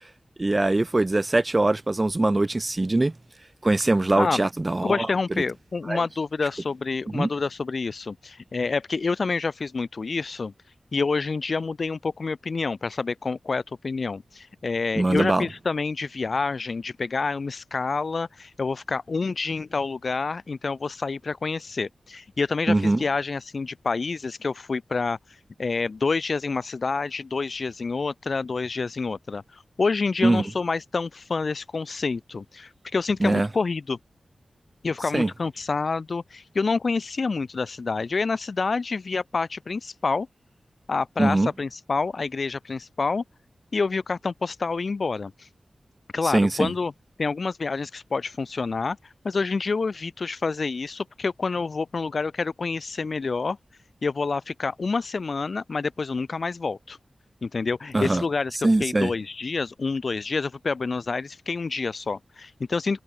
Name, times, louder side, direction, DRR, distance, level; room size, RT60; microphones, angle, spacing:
voice 1, 0.4-3.1 3.6-5.1 5.9-6.0 7.1-7.3 15.0-15.5 22.7-23.0 30.2-30.4 33.2-33.5 35.1-35.3 41.2-41.5 46.2-46.7 57.9-58.2 58.6-59.1, right 2 dB, 25° right, 3.4 m, -22 dB
voice 2, 4.8-10.5 10.9-25.2 25.6-34.0 34.8-40.3 40.9-43.2 43.7-45.5 46.1-46.9 47.2-53.6 54.0-57.0 57.4-63.0, left 4 dB, 60° left, 5.4 m, -28 dB
wide cardioid pair, 85°, 0 cm